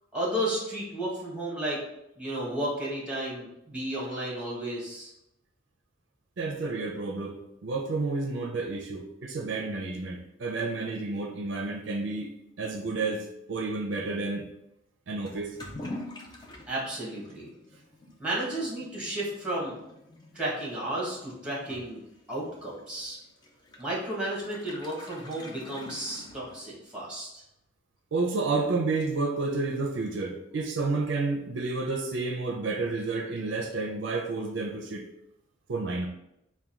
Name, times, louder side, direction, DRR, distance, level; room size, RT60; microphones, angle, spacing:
voice 1, 0.1-1.8 2.2-5.1 16.7-17.5 18.2-19.8 20.3-22.0 22.3-23.2 23.8-27.4, right 1 dB, 5° right, -6 dB, 1.4 m, -33 dB
voice 2, 6.4-12.3 12.6-14.5 15.1-15.5 28.1-35.0 35.7-36.1, right 3 dB, 70° right, 2 dB, 0.5 m, -30 dB
Toilet flush / Liquid, 15.3-26.9, left 1 dB, 20° left, 0.5 m, -46 dB
3.5 x 2.2 x 4.3 m, 0.83 s
head